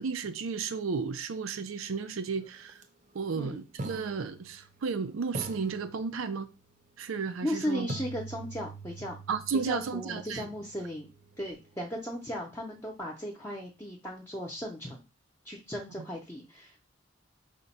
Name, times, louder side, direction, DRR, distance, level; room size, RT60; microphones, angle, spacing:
voice 1, 0.0-2.8 3.1-6.5 7.0-7.9 9.3-10.5, right 5 dB, 90° right, 0.5 m, -33 dB
sound 1, 2.7-2.8 3.8-5.0 5.3-6.6 7.9-11.8, right 3 dB, 40° right, 0.6 m, -43 dB
voice 2, 7.4-9.2 9.6-11.1 11.4-15.0 15.4-16.8, equal, 15° left, 0.5 m, -36 dB
4.9 x 2.2 x 4.0 m
head